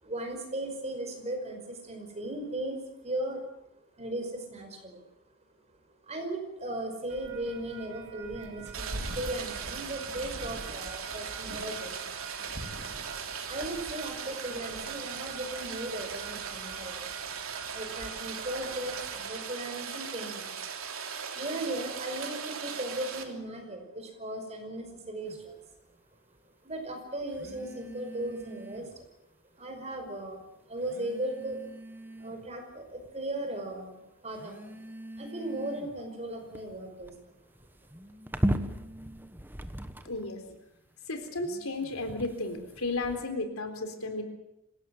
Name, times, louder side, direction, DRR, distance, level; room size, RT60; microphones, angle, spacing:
voice 1, 0.0-3.4 4.0-5.0 6.0-12.2 13.4-17.1 17.7-20.6 21.3-25.6 26.6-29.1 29.6-30.4 30.7-31.6 32.2-33.9 34.2-34.8 35.1-37.3, right 1 dB, 30° right, 4 dB, 5.3 m, -37 dB
sound 1, 7.1-19.2, right 3 dB, 50° right, 3.7 m, -45 dB
Rain, 8.7-23.2, right 6 dB, 75° right, 3.2 m, -39 dB
sound 2, 25.2-25.5 27.3-29.1 30.0-30.1 30.8-32.5 33.0-33.6 34.3-40.3 41.1-43.2, equal, 10° right, 1.2 m, -38 dB
voice 2, 40.0-40.5 41.1-44.2, left 2 dB, 80° left, 6 dB, 3.8 m, -34 dB
26.0 x 17.0 x 7.8 m, 0.89 s
head